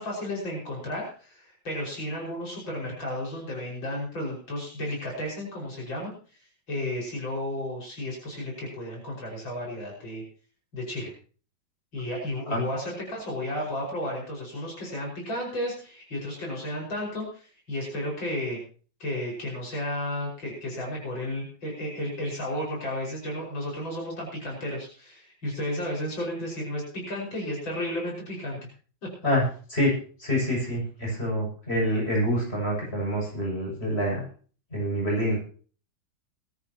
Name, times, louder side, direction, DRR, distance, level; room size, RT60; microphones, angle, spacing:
voice 1, 0.0-6.1 6.7-10.2 10.7-11.1 11.9-18.6 19.0-28.7 29.0-29.3, left 1 dB, 80° left, -2 dB, 6.3 m, -33 dB
voice 2, 29.7-34.2 34.7-35.4, equal, 30° left, -2 dB, 7.5 m, -26 dB
20.5 x 13.5 x 3.0 m, 0.40 s
omnidirectional pair, 2.1 m